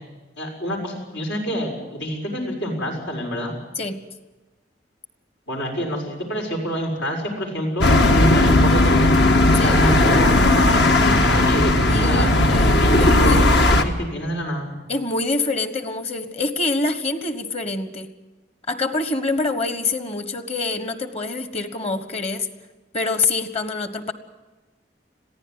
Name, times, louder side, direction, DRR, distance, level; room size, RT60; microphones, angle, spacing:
voice 1, 0.4-3.5 5.5-9.2 9.6-14.7, equal, 85° left, 1 dB, 6.4 m, -27 dB
sound 1, 7.8-13.8, left 2 dB, 65° left, 1.7 m, -16 dB
voice 2, 11.9-13.4 14.9-18.1 18.7-22.5 22.9-24.1, left 3 dB, 35° left, 10 dB, 1.4 m, -26 dB
22.0 x 15.0 x 9.6 m, 1.2 s
head